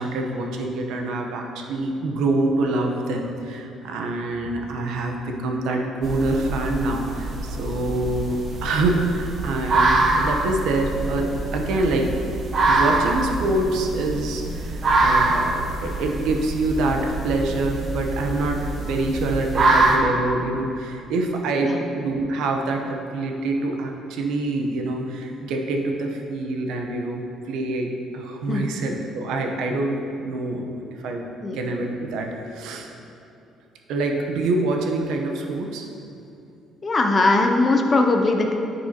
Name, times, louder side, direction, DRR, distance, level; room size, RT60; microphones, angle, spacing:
voice 1, 0.0-12.2 12.7-31.2 31.5-32.9 33.9-35.9, right 2 dB, 75° right, 2 dB, 0.8 m, -26 dB
sound 1, 6.0-20.0, right 2 dB, 35° right, 0.7 m, -24 dB
voice 2, 36.8-38.5, left 2 dB, 25° left, 3 dB, 0.5 m, -20 dB
9.5 x 5.5 x 2.9 m, 2.7 s
cardioid pair, 165°, 0 cm